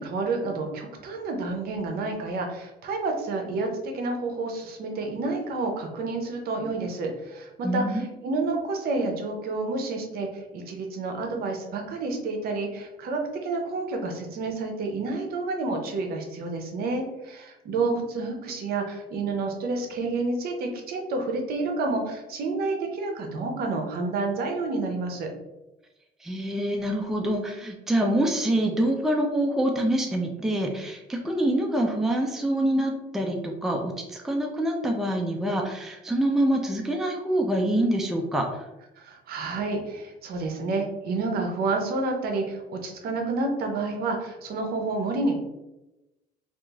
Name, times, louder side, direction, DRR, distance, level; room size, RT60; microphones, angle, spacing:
voice 1, 0.0-25.3 39.0-45.4, right 3 dB, 65° right, 3 dB, 0.6 m, -29 dB
voice 2, 7.6-8.1 26.2-38.7, right 1 dB, ahead, 2 dB, 0.3 m, -26 dB
2.9 x 2.4 x 2.3 m, 0.97 s
cardioid pair, 110°, 17 cm